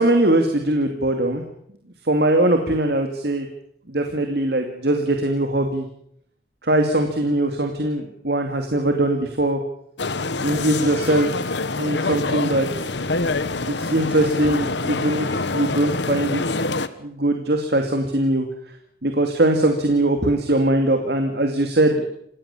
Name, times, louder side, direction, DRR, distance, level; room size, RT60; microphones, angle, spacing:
voice 1, 0.0-1.4 2.0-3.5 3.9-5.9 6.6-9.6 10.4-11.5 11.8-12.7 13.7-16.4 17.0-18.5 19.0-22.0, right 1 dB, 65° right, 5 dB, 2.5 m, -21 dB
sound 1, 10.0-16.9, left 3 dB, 80° left, 1.3 m, -25 dB
28.0 x 17.0 x 7.3 m, 0.70 s
head